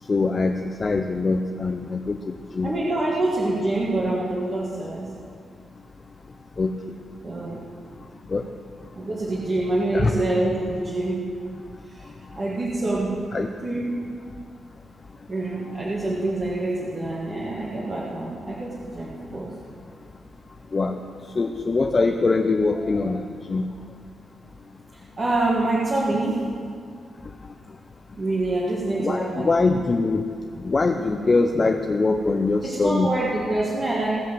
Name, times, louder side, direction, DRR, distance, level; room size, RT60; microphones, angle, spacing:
voice 1, 0.1-0.5 0.8-2.8 6.6-6.7 8.3-8.4 9.9-10.1 13.3-13.5 20.7-21.0 21.4-23.6 29.0-30.2 30.6-33.1, left 3 dB, 25° left, 5 dB, 0.5 m, -22 dB
voice 2, 2.6-5.1 7.2-7.6 8.9-11.3 11.9-12.0 12.4-13.2 13.6-14.0 15.3-19.5 24.9-26.5 28.1-29.5 32.6-34.1, right 2 dB, 25° right, -6 dB, 1.6 m, -26 dB
17.0 x 5.7 x 7.5 m, 2.2 s
wide cardioid pair, 175°, 0 cm